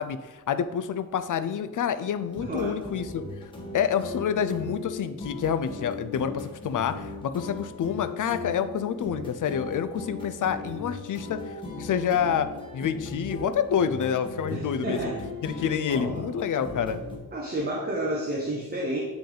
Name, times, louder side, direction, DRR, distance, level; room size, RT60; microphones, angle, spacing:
voice 1, 0.0-3.2 3.7-11.4 11.8-15.0 15.4-17.0, left 8 dB, 55° left, 11 dB, 0.5 m, -28 dB
sound 1, 2.2-17.2, left 3 dB, 15° left, 1.3 m, -38 dB
voice 2, 2.4-2.8 14.5-15.2 15.5-16.3 17.3-19.0, right 1 dB, 25° right, -3 dB, 0.9 m, -31 dB
9.2 x 3.4 x 3.8 m, 1.2 s
wide cardioid pair, 160°, 37 cm